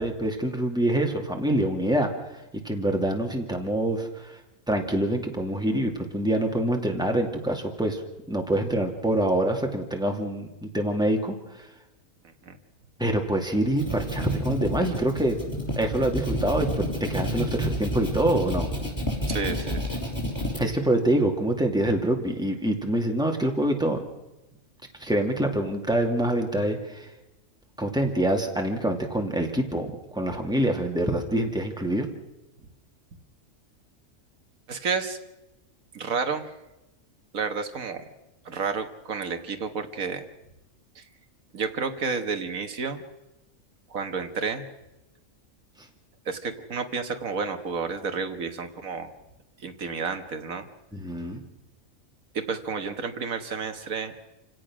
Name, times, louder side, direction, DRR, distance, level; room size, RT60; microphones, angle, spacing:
voice 1, 0.0-2.1 2.6-4.4 4.7-8.0 8.3-11.3 13.0-15.4 15.8-18.7 20.6-24.0 25.0-27.1 27.8-32.1 50.9-51.4, right 1 dB, 5° right, 2 dB, 2.4 m, -25 dB
sound 1, 13.5-20.6, equal, 15° left, 5.9 m, -30 dB
voice 2, 19.3-20.0 34.7-35.2 35.9-36.5 37.3-38.1 38.5-40.2 41.0-41.1 41.5-43.0 43.9-44.6 46.3-49.1 49.6-50.7 52.3-54.1, right 5 dB, 90° right, 7 dB, 1.9 m, -31 dB
27.5 x 17.0 x 6.2 m, 0.97 s
omnidirectional pair, 1.4 m